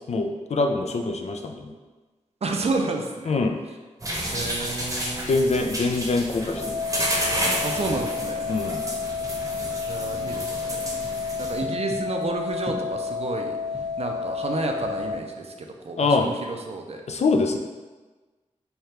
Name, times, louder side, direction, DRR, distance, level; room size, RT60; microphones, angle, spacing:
voice 1, 0.1-1.7 3.3-3.6 5.3-6.8 8.5-8.8 16.0-16.3 17.1-17.6, left 3 dB, 60° left, 4 dB, 0.4 m, -24 dB
voice 2, 2.4-3.4 4.3-5.3 7.6-8.5 9.9-10.8 11.4-13.6 14.0-17.0, right 3 dB, 55° right, 3 dB, 0.5 m, -30 dB
sound 1, 4.0-11.6, right 1 dB, 25° right, 0.8 m, -31 dB
sound 2, 6.6-15.2, left 5 dB, 20° left, 1.2 m, -30 dB
3.3 x 2.3 x 4.2 m, 1.3 s
wide cardioid pair, 65°, 13 cm